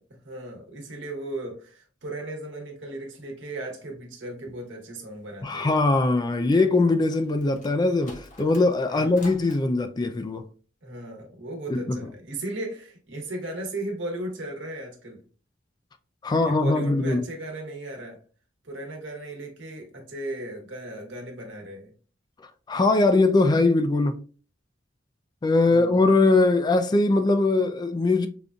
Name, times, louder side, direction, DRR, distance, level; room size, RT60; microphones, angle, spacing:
voice 1, 0.2-5.8 8.9-9.2 10.8-15.2 16.3-18.2 18.6-21.9 25.7-26.0, right 1 dB, 75° right, 1.1 m, -36 dB
voice 2, 5.4-10.4 11.7-12.0 16.2-17.3 22.7-24.2 25.4-28.3, left 2 dB, 20° left, 0.3 m, -21 dB
sound 1, 6.7-9.6, left 1 dB, 45° left, 1.0 m, -48 dB
5.1 x 2.5 x 2.3 m
head